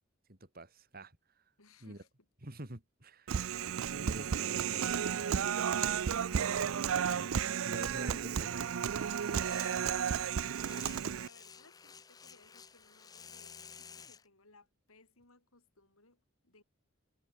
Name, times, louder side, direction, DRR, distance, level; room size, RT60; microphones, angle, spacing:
voice 1, 0.3-1.4 1.8-2.0 2.4-3.4 4.0-5.8 6.6-6.7 7.0-7.3 7.6-9.0 10.6-10.7, right 1 dB, 45° right, 3.0 m, -48 dB
voice 2, 1.6-2.3 6.3-7.1 7.8-8.2 10.7-16.6, left 3 dB, 85° left, 6.7 m, -62 dB
Human voice, 3.3-11.3, right 8 dB, 75° right, 0.5 m, -33 dB
sound 1, 3.5-8.9, right 2 dB, 30° right, 1.4 m, -61 dB
sound 2, 9.1-14.2, left 6 dB, 15° left, 0.4 m, -54 dB
head